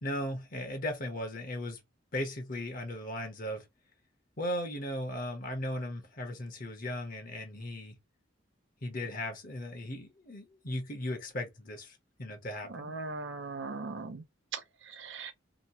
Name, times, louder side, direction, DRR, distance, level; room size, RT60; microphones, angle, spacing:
voice 1, 0.0-1.8 2.1-3.7 4.4-8.0 8.8-12.9, left 1 dB, 50° left, 1.0 m, -37 dB
voice 2, 12.7-14.2 14.5-15.3, right 4 dB, 70° right, 0.6 m, -39 dB
2.9 x 2.2 x 2.7 m
head